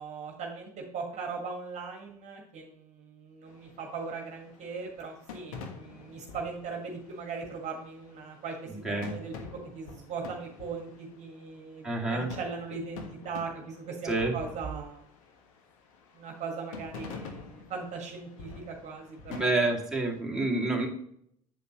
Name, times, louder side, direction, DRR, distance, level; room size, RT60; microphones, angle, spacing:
voice 1, 0.0-9.3 9.7-15.0 16.1-19.5, right 5 dB, 35° right, 1 dB, 1.6 m, -39 dB
sound 1, 3.5-20.2, left 5 dB, 60° left, 1.3 m, -48 dB
voice 2, 11.8-12.3 14.0-14.3 19.3-20.9, right 2 dB, 5° right, -2 dB, 2.1 m, -28 dB
8.2 x 7.7 x 2.9 m, 0.67 s
figure-of-eight pair, 70°, 19 cm